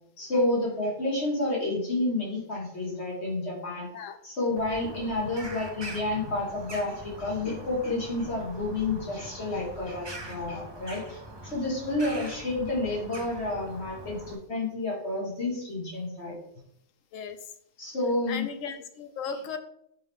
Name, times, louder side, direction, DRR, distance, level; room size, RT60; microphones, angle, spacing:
voice 1, 0.2-3.9 4.2-16.4 17.8-18.5, left 2 dB, 55° left, -3 dB, 1.8 m, -30 dB
Bird vocalization bird call bird song, 4.6-14.4, right 1 dB, 25° right, 0.6 m, -43 dB
voice 2, 18.3-19.6, left 6 dB, 80° left, 8 dB, 1.0 m, -36 dB
5.6 x 4.8 x 3.5 m, 0.73 s
omnidirectional pair, 1.3 m